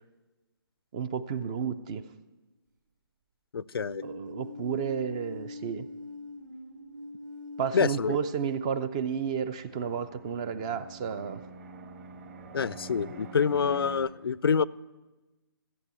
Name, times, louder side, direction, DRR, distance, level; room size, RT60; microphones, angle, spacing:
voice 1, 0.9-2.1 4.0-5.9 7.6-11.4, right 7 dB, 15° right, 13 dB, 0.4 m, -32 dB
voice 2, 3.5-4.0 7.7-8.2 12.5-14.6, left 6 dB, 75° left, 20 dB, 0.5 m, -26 dB
sound 1, 3.7-8.6, left 2 dB, 55° right, 1.8 m, -43 dB
Fixed-wing aircraft airplane, 9.1-14.0, right 4 dB, 40° right, 1.5 m, -45 dB
14.5 x 8.4 x 8.2 m, 1.2 s
hypercardioid pair, 160°, 12 cm